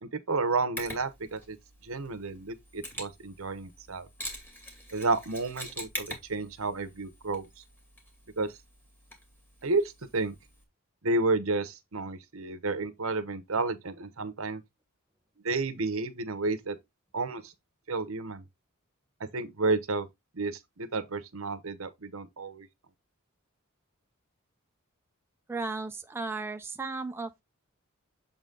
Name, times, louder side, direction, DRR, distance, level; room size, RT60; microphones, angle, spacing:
voice 1, 0.0-1.6 1.8-4.1 4.9-7.5 8.4-8.5 9.6-10.3 11.0-14.6 15.4-16.8 17.1-17.5 17.9-18.4 19.3-20.1 20.3-22.7, right 3 dB, 70° right, 0.9 m, -31 dB
Mechanisms, 0.8-10.6, equal, 10° left, 2.3 m, -45 dB
voice 2, 25.5-27.4, right 3 dB, 10° right, 0.4 m, -35 dB
7.3 x 3.9 x 3.8 m
head